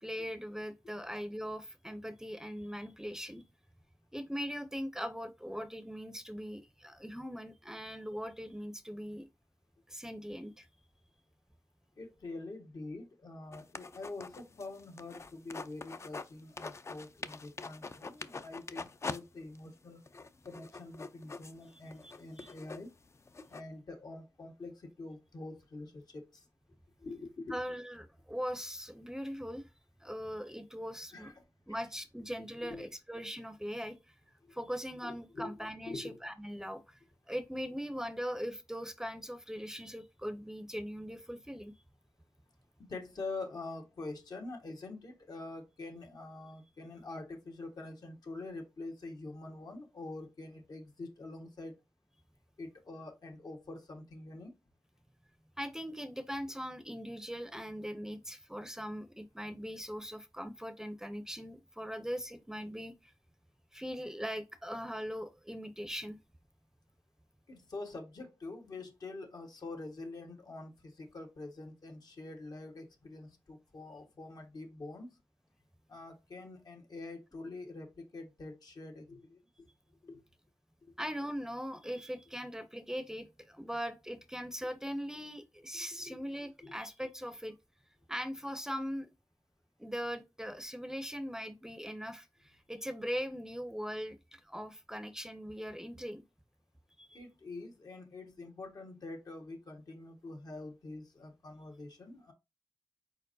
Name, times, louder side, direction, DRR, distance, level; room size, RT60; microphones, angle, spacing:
voice 1, 0.0-3.4 4.1-9.3 9.9-10.7 22.0-22.5 27.5-29.7 30.0-31.3 31.7-34.1 34.5-37.0 37.3-41.7 55.6-63.1 63.7-66.2 81.0-87.6 88.1-89.1 89.8-96.2 97.0-97.2, equal, 5° right, 0.6 m, -40 dB
voice 2, 12.0-20.0 20.4-22.9 23.5-26.5 27.0-27.5 31.1-31.8 32.6-32.9 34.4-34.6 35.0-35.5 35.9-36.2 42.9-51.8 52.6-54.5 67.5-75.2 75.9-79.7 80.0-80.2 86.0-86.2 86.6-86.7 97.1-102.3, left 2 dB, 65° left, 1.4 m, -45 dB
sound 1, 13.5-16.3 16.6-19.2 19.5-19.6 20.1-23.6, left 4 dB, 40° left, 0.4 m, -44 dB
4.5 x 4.3 x 2.6 m
cardioid pair, 70°, 7 cm